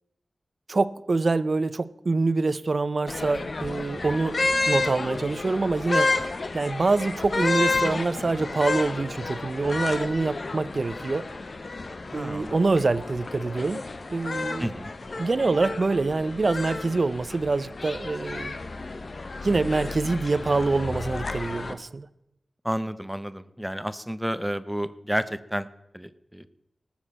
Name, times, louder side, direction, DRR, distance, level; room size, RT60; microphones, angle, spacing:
voice 1, 0.7-4.4 4.7-6.1 6.5-11.3 12.1-13.8 14.1-14.7 15.2-18.6 19.4-22.1, right 3 dB, 45° right, 16 dB, 0.6 m, -25 dB
sound 1, 3.1-21.7, left 3 dB, 50° left, 0.9 m, -31 dB
voice 2, 12.1-12.6 14.6-14.9 22.6-25.7 25.9-26.5, equal, 5° right, 13 dB, 0.7 m, -31 dB
18.5 x 7.2 x 7.4 m, 0.84 s
wide cardioid pair, 115°, 0 cm